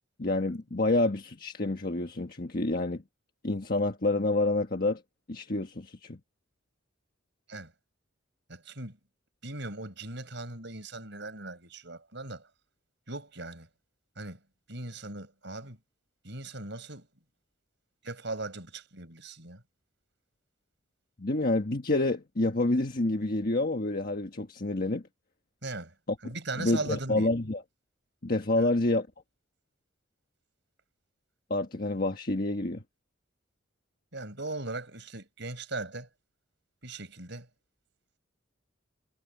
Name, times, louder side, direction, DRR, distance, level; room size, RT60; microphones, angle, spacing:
voice 1, 0.2-3.0 3.4-5.0 5.3-6.2 21.2-25.0 26.6-27.6 28.2-29.1 31.5-32.8, left 2 dB, 45° left, 1.5 m, -28 dB
voice 2, 8.5-9.0 9.4-12.5 13.1-13.7 14.2-14.4 14.7-15.8 16.2-17.1 18.0-19.6 25.6-25.9 26.2-27.3 28.5-28.7 34.1-36.1 36.8-37.5, right 2 dB, 60° right, 7.0 m, -39 dB
head